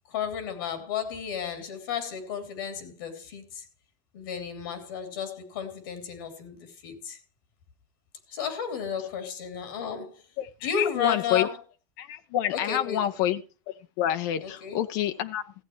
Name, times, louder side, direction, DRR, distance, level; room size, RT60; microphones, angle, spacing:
voice 1, 0.1-3.7 4.1-7.2 8.3-10.2 10.6-11.6 12.5-13.1 14.4-14.8, left 7 dB, 90° left, 3.1 m, -33 dB
voice 2, 10.8-11.5 12.0-13.4 14.0-15.5, left 11 dB, 70° left, 0.8 m, -27 dB
15.0 x 8.3 x 4.6 m
supercardioid pair, 125°, 11 cm